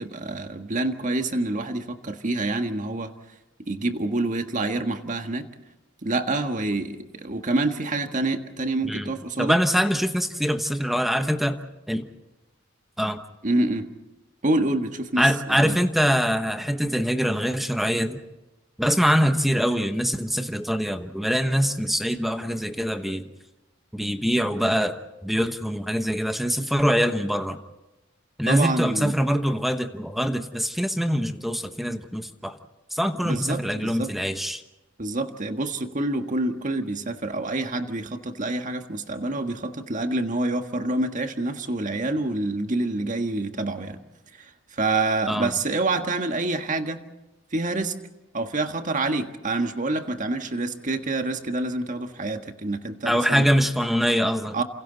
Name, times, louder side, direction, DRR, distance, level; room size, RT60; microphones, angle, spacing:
voice 1, 0.0-3.1 3.7-5.5 6.0-9.6 13.4-13.9 14.4-15.8 28.5-29.1 33.2-34.1 35.0-44.0 44.4-47.1 47.5-47.9 48.3-53.5 54.5-54.6, right 2 dB, 40° right, 6 dB, 1.6 m, -27 dB
voice 2, 9.4-12.1 13.0-13.2 15.2-18.2 18.8-23.3 23.9-25.0 25.2-27.6 28.4-32.5 32.9-34.6 45.3-45.5 53.0-54.6, equal, ahead, 8 dB, 1.1 m, -24 dB
29.0 x 28.0 x 4.1 m, 1.0 s
head